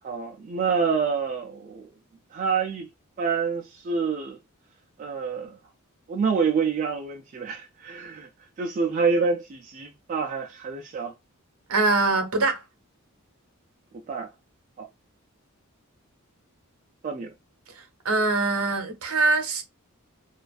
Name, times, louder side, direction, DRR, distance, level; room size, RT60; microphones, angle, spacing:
voice 1, 0.0-1.9 2.3-2.9 3.2-4.4 5.0-5.6 6.1-8.3 8.6-11.1 14.1-14.3 14.8-14.9 17.0-17.3, right 5 dB, 35° right, 0.3 m, -27 dB
voice 2, 11.7-12.6 18.0-19.6, right 3 dB, 75° right, 0.7 m, -23 dB
2.4 x 2.3 x 2.3 m
head